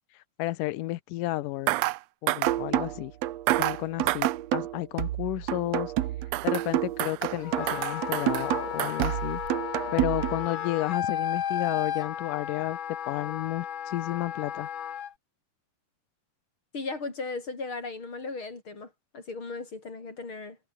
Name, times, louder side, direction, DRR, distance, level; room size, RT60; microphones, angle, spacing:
voice 1, 0.4-1.8 2.2-3.1 3.6-5.9 6.4-9.4 9.9-12.8 13.1-14.7, left 17 dB, 85° left, 2.3 m, -32 dB
sound 1, 1.7-2.0 2.3-2.6 3.5-3.8 4.1-4.4 6.3-6.7 7.0-7.4 7.7-8.5 8.8-9.2 9.5-9.6, right 18 dB, 85° right, 1.5 m, -29 dB
sound 2, 2.5-10.5, right 13 dB, 65° right, 1.8 m, -30 dB
Wind instrument woodwind instrument, 7.4-15.1, left 9 dB, 55° left, 1.5 m, -33 dB
voice 2, 16.7-20.6, left 3 dB, 40° left, 4.9 m, -37 dB
omnidirectional pair, 3.8 m